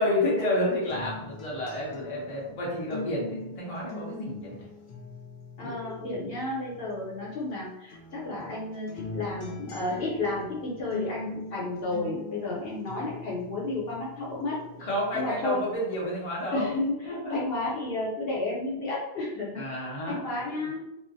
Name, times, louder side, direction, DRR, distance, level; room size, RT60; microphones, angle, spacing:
voice 1, 0.0-4.7 5.6-5.7 6.1-6.2 14.8-16.7 17.0-17.4 19.6-20.3, left 1 dB, 40° left, -5 dB, 0.7 m, -30 dB
sound 1, 0.9-7.5 7.9-15.5 15.9-16.9, left 3 dB, 90° left, 0.9 m, -43 dB
voice 2, 5.6-14.6 15.1-15.6 16.5-19.7 20.1-20.9, left 2 dB, 70° left, -6 dB, 1.1 m, -32 dB
2.4 x 2.1 x 2.6 m, 0.87 s
omnidirectional pair, 1.0 m